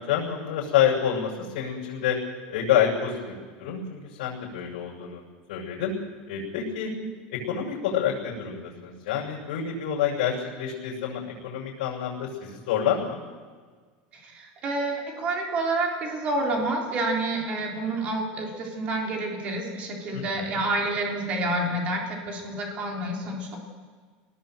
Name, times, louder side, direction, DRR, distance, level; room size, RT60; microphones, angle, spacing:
voice 1, 0.0-2.2 2.5-5.2 5.5-5.9 6.3-6.9 7.3-13.2 20.1-20.6, left 9 dB, 75° left, -4 dB, 7.2 m, -28 dB
voice 2, 14.1-23.6, right 2 dB, 25° right, 0 dB, 3.8 m, -28 dB
25.0 x 19.5 x 7.8 m, 1.6 s
supercardioid pair, 180°, 5 cm